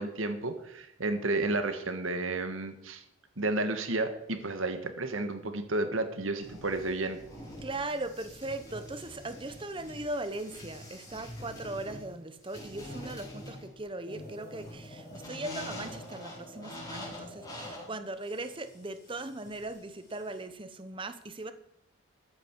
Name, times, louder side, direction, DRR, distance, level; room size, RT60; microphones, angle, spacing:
voice 1, 0.0-3.0 3.4-7.2, right 2 dB, 70° right, 8 dB, 1.6 m, -32 dB
sound 1, 6.4-20.4, left 1 dB, 15° left, 4.2 m, -45 dB
voice 2, 7.6-21.5, right 2 dB, 25° right, 10 dB, 0.9 m, -39 dB
13.0 x 9.7 x 4.7 m, 0.79 s
head